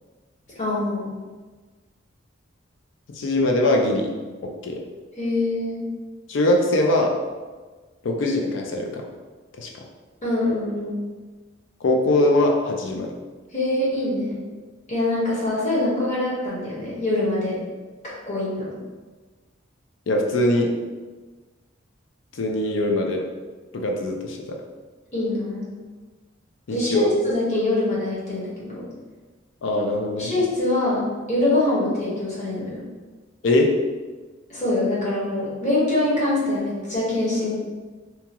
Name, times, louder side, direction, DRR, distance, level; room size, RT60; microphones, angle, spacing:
voice 1, 0.6-1.1 5.2-5.8 10.2-11.0 13.5-14.4 14.9-17.6 18.0-18.7 25.1-25.7 26.7-28.9 30.2-32.8 34.5-37.5, left 2 dB, 40° left, -7 dB, 1.0 m, -24 dB
voice 2, 3.2-4.1 4.6-4.8 6.3-7.1 8.0-9.1 9.6-9.7 11.8-13.1 20.1-20.7 22.3-23.2 23.7-24.6 26.7-27.1 29.6-30.3 33.4-33.7, left 1 dB, 70° left, 1 dB, 0.4 m, -21 dB
2.8 x 2.3 x 2.8 m, 1.3 s
head